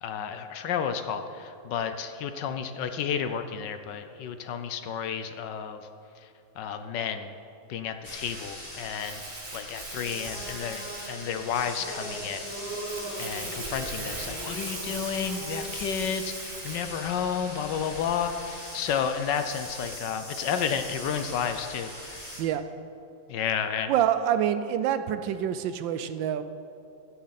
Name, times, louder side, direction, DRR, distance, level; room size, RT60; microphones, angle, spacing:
voice 1, 0.0-5.8 6.6-7.3 7.7-9.2 9.5-12.4 12.7-12.9 13.2-21.9 23.3-23.9, left 7 dB, 70° left, 8 dB, 1.2 m, -31 dB
sound 1, 8.0-22.4, left 1 dB, 20° left, 2.3 m, -41 dB
Crumpling crinkling, 9.0-16.9, right 3 dB, 30° right, 0.9 m, -41 dB
sound 2, 10.0-16.0, right 1 dB, 50° left, 3.5 m, -40 dB
voice 2, 23.9-26.4, right 10 dB, 75° right, 11 dB, 1.3 m, -26 dB
16.0 x 10.0 x 4.1 m, 2.6 s
omnidirectional pair, 2.2 m